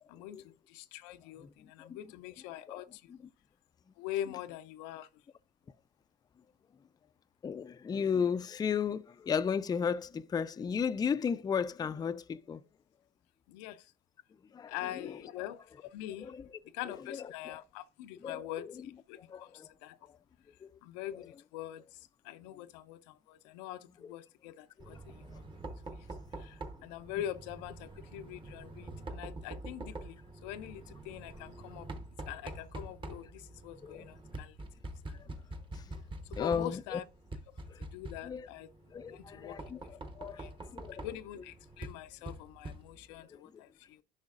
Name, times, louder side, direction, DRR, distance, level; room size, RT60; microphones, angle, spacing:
voice 1, 0.1-3.1 4.0-5.1 13.5-13.9 14.7-16.3 16.7-19.2 19.8-20.0 20.8-25.4 25.9-26.1 26.4-31.9 32.3-34.6 35.1-35.2 36.3-37.0 37.8-38.7 39.1-39.6 40.4-40.5 41.0-44.0, left 12 dB, 90° left, 0.5 m, -44 dB
voice 2, 1.8-2.1 2.7-2.8 3.1-3.2 7.4-12.6 14.5-15.4 16.2-16.5 17.1-17.6 18.2-18.7 19.3-19.7 20.6-20.7 22.5-22.6 24.0-24.1 24.9-25.0 33.8-34.1 35.7-35.8 36.4-37.0 37.7-37.8 38.2-38.5 38.9-41.1 43.3-43.4, left 6 dB, 20° left, 0.4 m, -35 dB
Knock, 24.8-43.2, right 2 dB, 25° right, 1.0 m, -46 dB
10.5 x 5.7 x 2.4 m
supercardioid pair, 90°, 21 cm